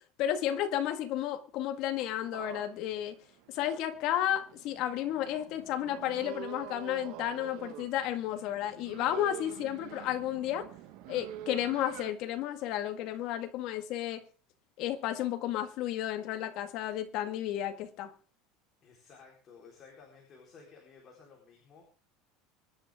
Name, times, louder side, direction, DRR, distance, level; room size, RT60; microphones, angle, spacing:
voice 1, 0.2-3.2 3.5-10.7 11.1-14.2 14.8-18.1, left 11 dB, 45° left, 1.9 m, -32 dB
sound 1, 2.3-12.1, right 12 dB, 50° right, 1.3 m, -47 dB
voice 2, 18.8-21.9, left 5 dB, 25° left, 4.3 m, -55 dB
24.5 x 11.0 x 3.8 m
cardioid pair, 175°, 0 cm